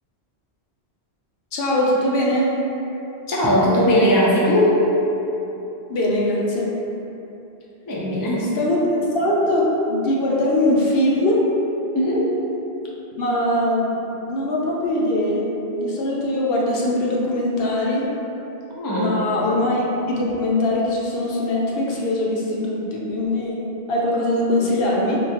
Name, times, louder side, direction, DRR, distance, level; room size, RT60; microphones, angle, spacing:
voice 1, 1.5-2.5 5.9-6.7 8.4-11.4 13.1-13.9 14.3-15.5 15.7-18.1 19.0-25.2, left 1 dB, 70° left, -4 dB, 0.8 m, -21 dB
voice 2, 3.3-4.8 7.8-8.5 11.9-12.3 18.8-19.1, equal, 35° left, -6 dB, 0.3 m, -18 dB
3.7 x 2.2 x 2.8 m, 2.9 s
omnidirectional pair, 1.1 m